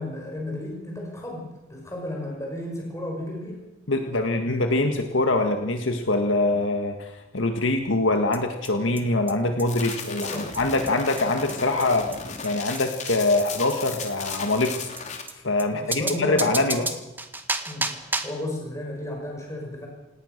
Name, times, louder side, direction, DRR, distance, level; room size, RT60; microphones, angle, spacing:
voice 1, 0.0-3.6 10.1-10.5 15.7-16.9 17.7-19.9, left 1 dB, 15° left, -1 dB, 5.8 m, -33 dB
voice 2, 3.9-12.1 12.4-14.8 15.4-16.8, left 2 dB, 70° left, 5 dB, 1.8 m, -24 dB
sound 1, 8.3-8.4 8.6-8.7 9.0-9.1 9.3-9.4 9.6-9.7 9.9-10.0 10.2-10.3 10.5-10.6 10.9-11.0 11.2-11.3 11.5-11.6 11.8-11.9 12.1-12.2 12.4-12.5 12.8-12.9 13.1-13.2 13.4-13.5 13.7-13.8 14.0-14.1 14.3-14.4 14.6-14.7 15.0-15.1 15.3-15.4 15.6-15.7 15.9-18.4, right 2 dB, 10° right, 1.6 m, -31 dB
sound 2, 9.7-15.2, left 5 dB, 35° left, 3.3 m, -36 dB
28.0 x 18.5 x 6.7 m, 0.99 s
head